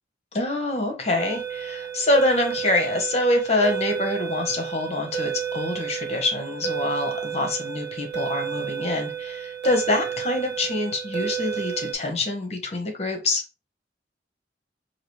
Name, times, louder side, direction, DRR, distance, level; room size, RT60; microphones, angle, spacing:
voice 1, 0.3-13.4, left 2 dB, 35° left, 1.0 m, -25 dB
sound 1, 1.2-11.9, right 8 dB, 70° right, 1.7 m, -31 dB
4.9 x 2.7 x 3.1 m
head